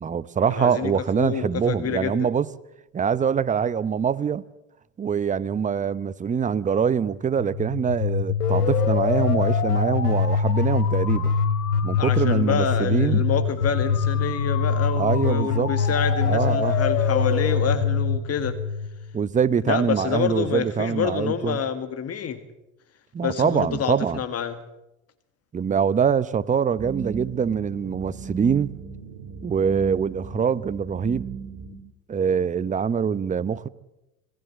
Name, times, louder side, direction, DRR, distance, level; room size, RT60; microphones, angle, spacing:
voice 1, 0.0-2.5 2.9-4.4 5.0-11.3 11.8-13.2 15.0-15.7 16.2-16.8 19.1-21.6 23.1-24.2 25.5-28.7 29.4-31.2 32.1-33.7, right 7 dB, 15° right, 0.8 m, -24 dB
voice 2, 0.6-2.1 12.0-18.6 19.6-22.4 23.2-24.6, left 7 dB, 35° left, 1.9 m, -27 dB
sound 1, 7.4-19.2, left 5 dB, 85° left, 3.2 m, -23 dB
sound 2, 26.8-31.8, right 5 dB, 55° right, 2.5 m, -37 dB
27.0 x 17.5 x 7.7 m
hypercardioid pair, 90°, 44 cm